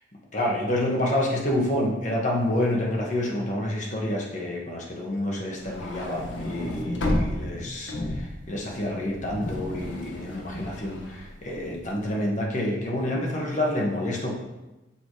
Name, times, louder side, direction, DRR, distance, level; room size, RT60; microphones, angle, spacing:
voice 1, 0.3-14.4, left 1 dB, 40° left, -2 dB, 1.3 m, -28 dB
sound 1, 5.6-11.9, left 1 dB, 85° left, 0.9 m, -32 dB
6.9 x 3.5 x 4.8 m, 1.0 s
head